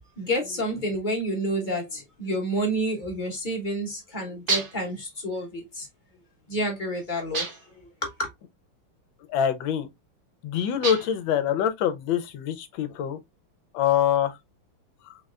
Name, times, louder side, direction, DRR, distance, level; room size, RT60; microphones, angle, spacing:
voice 1, 0.2-5.9 6.5-7.5 8.0-8.3, equal, 30° left, 0.9 m, -29 dB
sound 1, 4.5-4.9 7.3-7.8 10.8-11.3, right 4 dB, 80° right, 0.4 m, -29 dB
voice 2, 9.3-9.9 10.4-13.2 13.7-14.4 15.1-15.2, left 9 dB, 75° left, 1.3 m, -25 dB
4.0 x 3.2 x 2.3 m
omnidirectional pair, 2.3 m